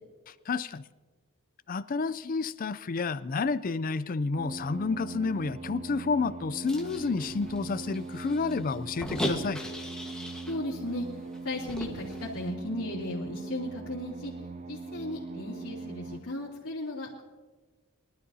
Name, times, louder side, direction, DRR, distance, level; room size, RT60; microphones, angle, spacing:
voice 1, 0.5-0.8 1.7-9.6, left 4 dB, 40° left, 14 dB, 0.4 m, -30 dB
sound 1, 4.4-16.2, right 3 dB, 30° right, 0.5 m, -41 dB
sound 2, 6.6-10.6 10.9-11.0 11.3-12.3, equal, 5° left, 1.3 m, -38 dB
voice 2, 10.5-11.1 11.4-14.3 14.7-17.2, left 1 dB, 70° left, -7 dB, 2.8 m, -36 dB
23.0 x 12.5 x 2.8 m, 1.3 s
head